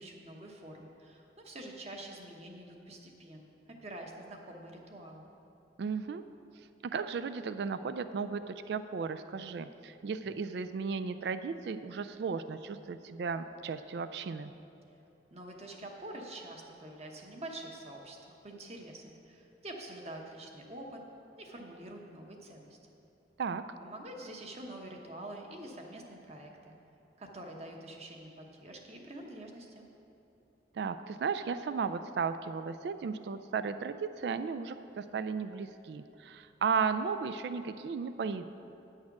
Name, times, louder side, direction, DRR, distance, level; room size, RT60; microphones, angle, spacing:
voice 1, 0.0-3.5 3.8-5.3 15.3-21.0 21.4-22.8 23.8-26.7 27.2-29.8, right 1 dB, 35° right, 1 dB, 1.0 m, -46 dB
voice 2, 5.8-6.2 6.8-14.5 23.4-23.6 30.7-38.5, right 5 dB, 65° right, 11 dB, 0.3 m, -35 dB
9.5 x 6.5 x 5.9 m, 2.9 s
head